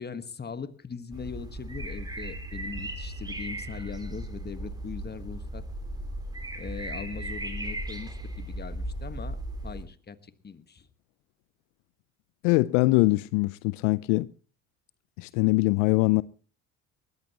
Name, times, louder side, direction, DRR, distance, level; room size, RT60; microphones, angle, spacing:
voice 1, 0.0-5.6 6.5-10.9, left 5 dB, 25° left, 1.5 m, -40 dB
sound 1, 1.1-9.8, right 1 dB, 10° right, 4.0 m, -36 dB
voice 2, 12.4-14.3 15.2-16.2, left 23 dB, 70° left, 0.6 m, -22 dB
20.0 x 15.0 x 3.0 m
hypercardioid pair, 65°, 39 cm